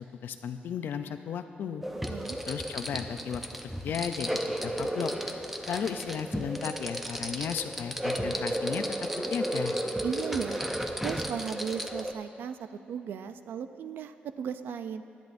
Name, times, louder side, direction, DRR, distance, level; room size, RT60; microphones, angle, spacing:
voice 1, 0.2-1.8 2.5-4.3 4.6-5.1 5.7-8.8 9.2-9.8, left 7 dB, 70° left, 9 dB, 0.5 m, -34 dB
sound 1, 1.8-12.1, right 1 dB, 5° right, 0.6 m, -33 dB
voice 2, 10.0-10.6 11.0-12.6 12.9-15.0, right 7 dB, 75° right, 10 dB, 0.5 m, -36 dB
18.5 x 10.5 x 2.6 m, 2.7 s
wide cardioid pair, 140°, 4 cm